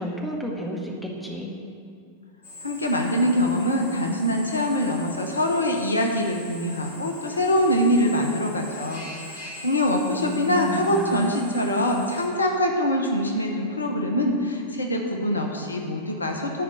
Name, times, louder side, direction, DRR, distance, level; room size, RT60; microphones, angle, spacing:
voice 1, 0.0-1.5 10.1-11.4, equal, 5° left, -2 dB, 1.8 m, -32 dB
Drill, 2.4-12.3, left 2 dB, 60° left, 2.6 m, -42 dB
voice 2, 2.6-16.6, equal, 80° left, 2 dB, 1.1 m, -24 dB
11.5 x 5.0 x 8.2 m, 2.3 s
figure-of-eight pair, 90°, 0 cm